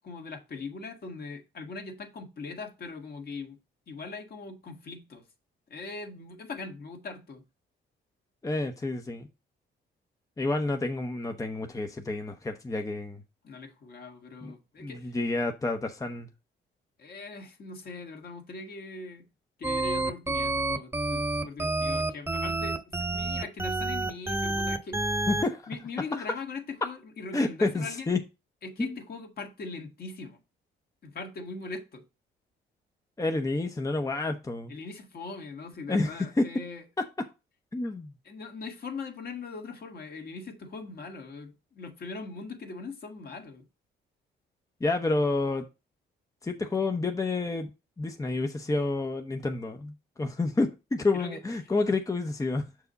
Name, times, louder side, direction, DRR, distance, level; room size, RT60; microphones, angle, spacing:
voice 1, 0.0-3.6 3.9-5.2 5.7-7.4 13.4-15.1 17.0-19.3 19.6-25.0 25.7-28.1 28.6-30.4 31.0-32.0 34.7-36.8 38.2-43.6 51.1-51.4, left 4 dB, 50° left, 1.7 m, -41 dB
voice 2, 8.4-9.3 10.4-13.2 14.4-14.5 14.8-16.3 25.3-25.7 26.2-26.3 27.3-28.2 28.8-28.9 33.2-34.7 35.9-36.4 37.7-38.1 44.8-45.6 46.4-47.7 48.0-52.6, left 2 dB, 15° left, 0.8 m, -29 dB
sound 1, 19.6-25.4, right 2 dB, 10° right, 1.1 m, -29 dB
6.5 x 4.8 x 4.0 m
cardioid pair, 90°, 20 cm